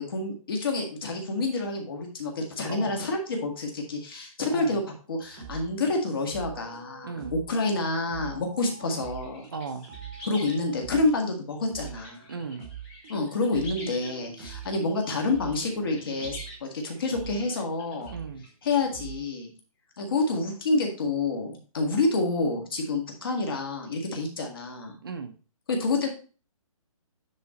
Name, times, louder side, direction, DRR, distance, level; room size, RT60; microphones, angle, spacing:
voice 1, 0.0-4.8 5.1-9.5 10.2-12.3 13.1-18.1 18.6-19.5 20.0-25.0 25.7-26.1, left 3 dB, 40° left, 2 dB, 1.8 m, -28 dB
sound 1, 5.2-11.3 11.7-13.2 13.5-14.8 15.3-16.6 17.1-19.3, right 8 dB, 15° right, 1.1 m, -44 dB
sound 2, 9.0-10.6 11.1-11.2 11.7-14.1 14.5-18.5, left 1 dB, 10° left, 0.8 m, -46 dB
voice 2, 9.5-9.9 12.3-12.6 18.1-18.4 25.0-25.3, right 5 dB, 40° right, 6 dB, 0.8 m, -36 dB
9.7 x 3.8 x 4.2 m, 0.37 s
hypercardioid pair, 175°, 18 cm